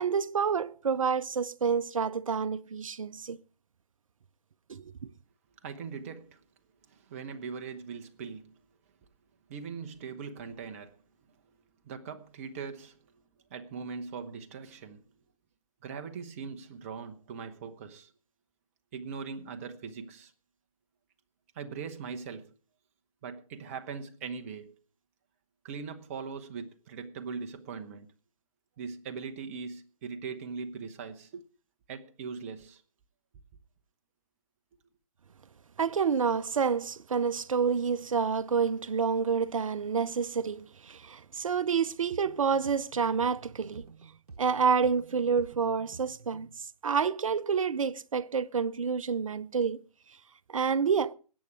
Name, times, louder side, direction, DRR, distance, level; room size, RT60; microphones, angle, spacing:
voice 1, 0.0-3.4 4.7-4.8 35.8-43.8 44.4-46.5 46.8-49.8 50.5-51.1, right 6 dB, 60° right, 0.7 m, -28 dB
voice 2, 5.6-6.4 6.9-8.6 9.5-11.0 11.8-13.0 13.5-15.0 15.8-18.1 18.9-20.3 21.5-22.5 23.2-24.7 25.6-28.1 28.8-31.4 31.9-32.8, right 5 dB, 20° right, 0.9 m, -40 dB
sound 1, 42.1-46.6, right 4 dB, 85° right, 0.9 m, -50 dB
21.0 x 8.4 x 4.8 m
figure-of-eight pair, 155°, 20 cm